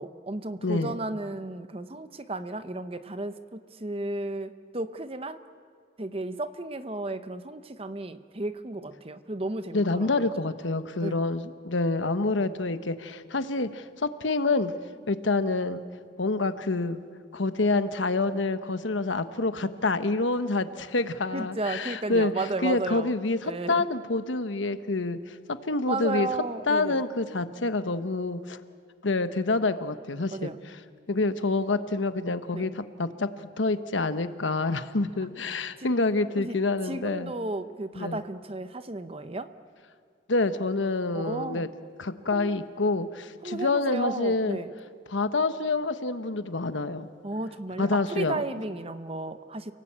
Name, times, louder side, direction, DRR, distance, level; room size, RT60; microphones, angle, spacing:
voice 1, 0.0-5.4 6.0-10.5 11.0-11.2 21.3-23.1 23.4-23.8 25.9-27.0 30.3-30.6 32.5-32.7 35.8-35.9 36.3-36.6 36.8-39.5 41.1-41.7 42.3-42.6 43.4-44.7 47.2-49.7, right 2 dB, 30° right, 11 dB, 0.9 m, -34 dB
voice 2, 0.6-0.9 9.7-14.7 15.1-15.8 16.2-17.0 17.3-22.3 22.6-25.3 25.7-26.3 26.7-28.6 29.0-30.5 31.1-33.3 33.6-37.3 38.0-38.2 40.3-41.7 42.0-44.6 45.1-47.1 47.8-48.4, left 3 dB, 80° left, 11 dB, 1.1 m, -27 dB
29.5 x 18.5 x 8.8 m, 2.2 s
head